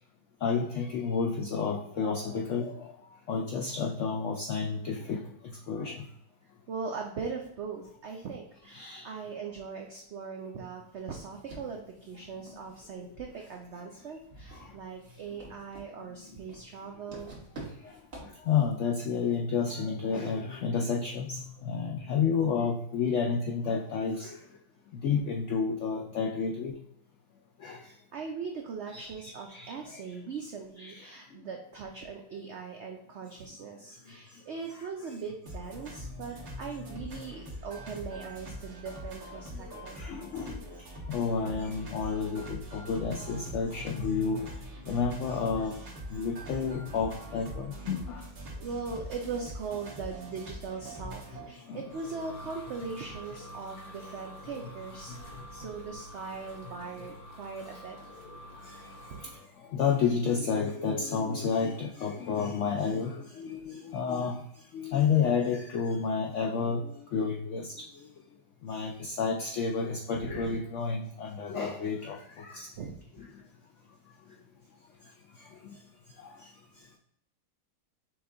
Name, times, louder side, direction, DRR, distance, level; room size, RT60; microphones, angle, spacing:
voice 1, 0.4-2.7 3.3-5.2 5.7-6.0 8.7-9.0 18.5-24.3 25.0-26.7 27.6-27.8 28.9-29.1 29.5-29.7 30.8-30.9 40.0-40.6 41.1-44.4 44.9-45.7 46.1-48.2 51.7-51.8 59.7-64.4 64.7-67.7 68.6-72.7, left 5 dB, 85° left, 0 dB, 0.6 m, -30 dB
voice 2, 6.7-17.3 27.8-40.0 48.6-58.0 59.1-59.2 70.1-70.6 72.7-73.0, right 5 dB, 85° right, 2 dB, 0.6 m, -40 dB
sound 1, 11.1-18.8, right 2 dB, 40° right, 1.4 m, -50 dB
sound 2, 35.5-51.5, right 1 dB, 60° right, 1.6 m, -43 dB
sound 3, 51.4-59.4, equal, 70° left, 1.6 m, -47 dB
6.0 x 2.3 x 3.7 m, 0.76 s
omnidirectional pair, 1.8 m